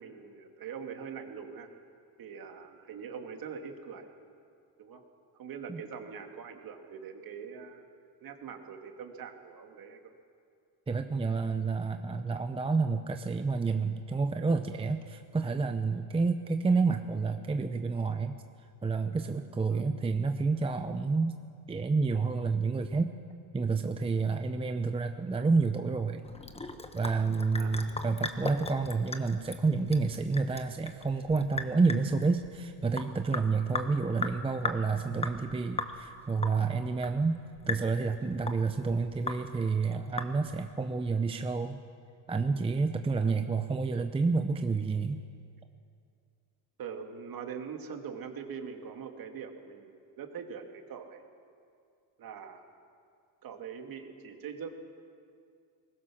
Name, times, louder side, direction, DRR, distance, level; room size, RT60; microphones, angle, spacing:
voice 1, 0.0-1.7 2.2-4.1 4.8-5.0 5.3-7.9 8.2-10.2 19.7-19.8 27.6-28.0 43.2-43.3 46.8-51.3 52.2-52.6 53.4-54.7, right 6 dB, 45° right, 4 dB, 2.4 m, -43 dB
voice 2, 10.9-18.3 18.8-21.4 21.7-23.1 23.5-26.2 26.9-37.4 37.7-41.8 42.3-45.2, right 4 dB, 10° right, 7 dB, 0.7 m, -29 dB
Sink (filling or washing) / Drip, 26.2-40.7, left 3 dB, 10° left, 1.3 m, -39 dB
22.0 x 20.5 x 6.4 m, 2.4 s
cardioid pair, 120°, 49 cm